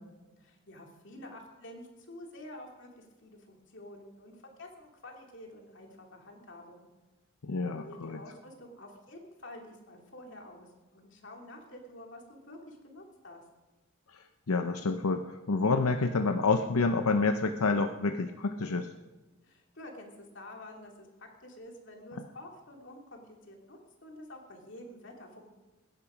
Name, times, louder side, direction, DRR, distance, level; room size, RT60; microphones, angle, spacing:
voice 1, 0.4-6.9 7.6-13.4 19.4-25.5, left 1 dB, 55° left, 1 dB, 2.8 m, -49 dB
voice 2, 7.4-8.2 14.1-18.9, left 3 dB, 90° left, 7 dB, 0.7 m, -28 dB
21.5 x 10.5 x 5.1 m, 1.2 s
head